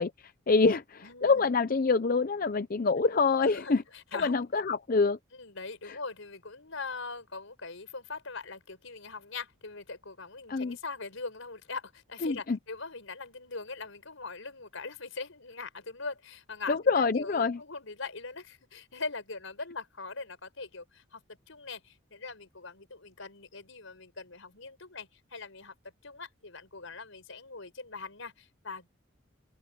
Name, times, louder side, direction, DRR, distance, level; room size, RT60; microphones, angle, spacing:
voice 1, 0.0-3.8 4.2-5.2 5.8-6.0 10.5-10.8 12.2-12.6 16.7-17.6, left 4 dB, 45° left, 0.5 m, -26 dB
voice 2, 1.0-1.5 3.4-4.3 5.3-21.2 21.5-25.7 26.0-28.9, left 4 dB, 75° left, 4.8 m, -41 dB
open air
head